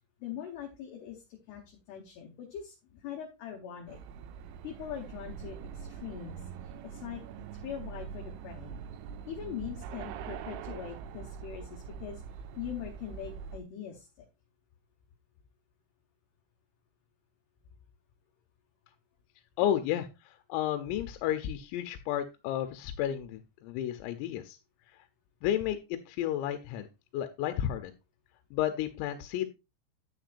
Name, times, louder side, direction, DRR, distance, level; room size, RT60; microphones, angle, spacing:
voice 1, 0.2-4.0 4.6-7.2 7.6-8.8 9.3-12.2 12.6-14.1, left 9 dB, 70° left, 1 dB, 2.7 m, -42 dB
sound 1, 3.9-13.6, right 7 dB, 85° right, 2.9 m, -43 dB
voice 2, 19.6-24.6 25.4-26.9 27.1-27.9 28.5-29.5, left 11 dB, 90° left, 8 dB, 3.4 m, -32 dB
9.7 x 9.0 x 2.5 m, 0.25 s
omnidirectional pair, 5.9 m